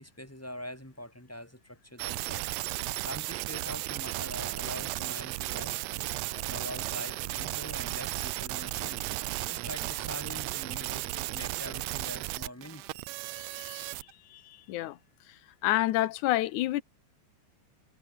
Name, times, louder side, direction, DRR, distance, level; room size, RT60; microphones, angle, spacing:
voice 1, 0.0-2.4 2.7-5.7 6.5-9.1 9.5-13.0, left 1 dB, 5° left, 5.1 m, -44 dB
sound 1, 2.0-14.1, right 18 dB, 75° right, 1.7 m, -35 dB
voice 2, 13.3-15.0 15.3-16.8, left 15 dB, 90° left, 2.4 m, -31 dB
omnidirectional pair, 3.3 m